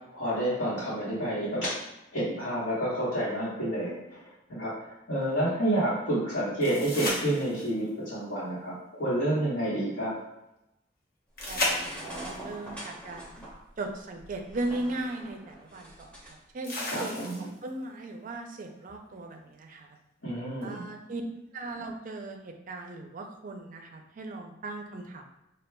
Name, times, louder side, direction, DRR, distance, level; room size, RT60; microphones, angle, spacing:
voice 1, 0.1-1.7 2.1-4.2 4.6-4.7 5.1-10.1 16.9-17.5 20.2-20.8, right 1 dB, 75° left, -12 dB, 1.2 m, -29 dB
sound 1, 6.6-7.9 11.4-12.4 14.3-14.4 16.6-17.7 20.6-20.7, left 1 dB, 50° left, 0.9 m, -33 dB
sound 2, 11.4-16.3, right 1 dB, 5° left, 0.8 m, -43 dB
voice 2, 11.5-13.3 13.8-20.0 20.6-21.2 21.5-25.3, right 2 dB, 45° right, 3 dB, 0.4 m, -38 dB
5.0 x 2.2 x 2.2 m, 0.88 s
head